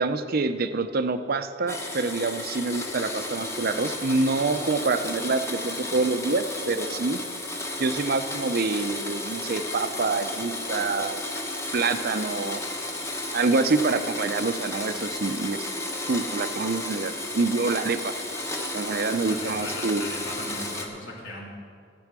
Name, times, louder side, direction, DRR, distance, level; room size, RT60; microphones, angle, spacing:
voice 1, 0.0-7.2 7.8-11.2 11.7-12.6 13.3-15.7 16.1-18.1 18.7-20.0, right 3 dB, 50° right, 10 dB, 0.6 m, -26 dB
Domestic sounds home sounds, 1.7-20.9, left 2 dB, 15° left, 1.1 m, -33 dB
voice 2, 19.0-21.5, left 1 dB, 85° left, -4 dB, 3.0 m, -39 dB
14.0 x 7.7 x 6.1 m, 2.1 s
head